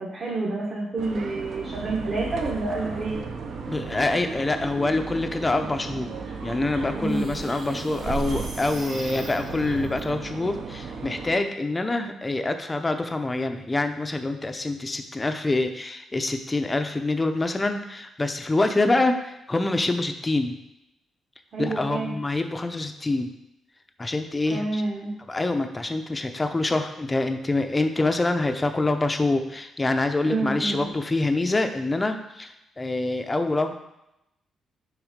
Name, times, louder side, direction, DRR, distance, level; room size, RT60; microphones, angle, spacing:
voice 1, 0.0-3.1 6.9-7.4 21.5-22.1 24.5-25.1 30.2-30.9, right 3 dB, 40° right, -4 dB, 1.2 m, -28 dB
sound 1, 1.0-11.4, right 4 dB, 55° right, 0.7 m, -35 dB
voice 2, 3.7-6.1 6.4-20.6 21.6-23.3 24.0-24.8 25.3-33.7, left 2 dB, 15° left, 7 dB, 0.5 m, -26 dB
sound 2, 6.2-10.0, right 2 dB, 90° right, 2.3 m, -40 dB
6.1 x 3.7 x 5.1 m, 0.86 s
cardioid pair, 140°, 0 cm